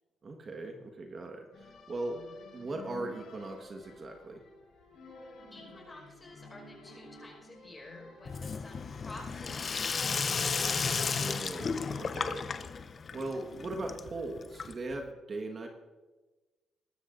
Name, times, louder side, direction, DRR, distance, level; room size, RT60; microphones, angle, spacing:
voice 1, 0.2-2.2 2.5-4.4 11.0-12.5 13.1-15.7, right 2 dB, 40° right, 3 dB, 1.4 m, -39 dB
sound 1, 1.5-12.1, left 4 dB, 75° left, 4.6 m, -51 dB
voice 2, 5.5-10.7, left 2 dB, 20° left, -1 dB, 5.1 m, -51 dB
Sink (filling or washing), 8.3-15.0, left 5 dB, 40° left, 0.6 m, -34 dB
20.5 x 12.5 x 2.6 m, 1.2 s
cardioid pair, 90°, 0 cm